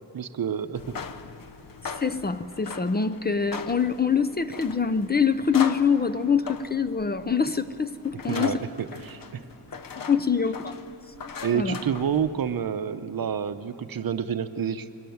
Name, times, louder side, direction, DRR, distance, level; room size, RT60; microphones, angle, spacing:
voice 1, 0.1-0.9 8.3-8.6 8.9-9.4 11.4-14.9, right 8 dB, 55° right, 11 dB, 0.8 m, -28 dB
sound 1, 0.7-12.6, left 5 dB, 50° left, 0.9 m, -40 dB
voice 2, 1.8-8.6 9.9-10.7 11.5-11.8, left 6 dB, 25° left, 10 dB, 0.6 m, -25 dB
22.0 x 17.5 x 9.4 m, 2.9 s
wide cardioid pair, 130°, 42 cm